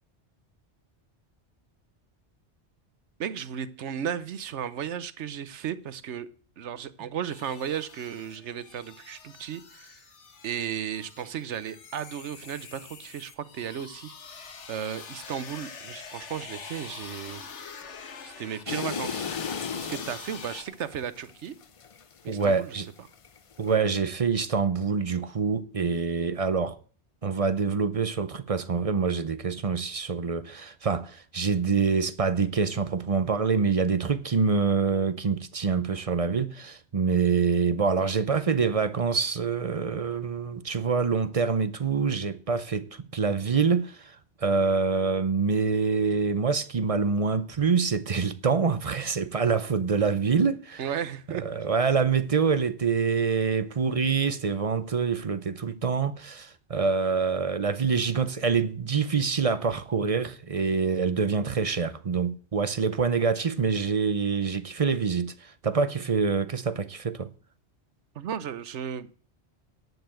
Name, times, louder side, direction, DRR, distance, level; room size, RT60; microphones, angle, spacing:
voice 1, 3.2-6.3 6.6-10.0 10.4-14.1 14.7-17.4 18.2-19.3 19.7-21.5 22.2-22.8 50.8-51.4 68.1-69.1, right 8 dB, 90° right, 1.1 m, -35 dB
sound 1, 7.3-20.6, left 5 dB, 85° left, 1.5 m, -45 dB
sound 2, 18.7-22.8 23.1-23.7, left 6 dB, 40° left, 0.5 m, -35 dB
voice 2, 22.3-22.9 23.6-26.8 27.2-50.8 51.3-67.3, right 5 dB, 40° right, 0.6 m, -26 dB
11.0 x 6.8 x 7.7 m
omnidirectional pair, 1.2 m